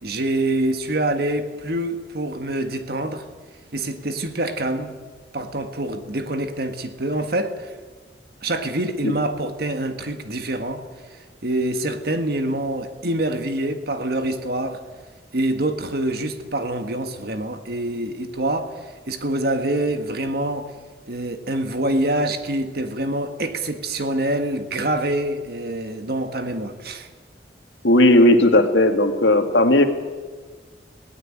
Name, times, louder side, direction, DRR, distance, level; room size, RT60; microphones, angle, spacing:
voice 1, 0.0-3.2 3.7-4.9 5.3-7.7 8.4-10.8 11.4-14.8 15.3-20.7 21.1-27.1, right 1 dB, 60° right, 1.7 m, -25 dB
voice 2, 27.8-29.8, left 1 dB, 85° left, 2.2 m, -15 dB
19.0 x 17.5 x 8.8 m
head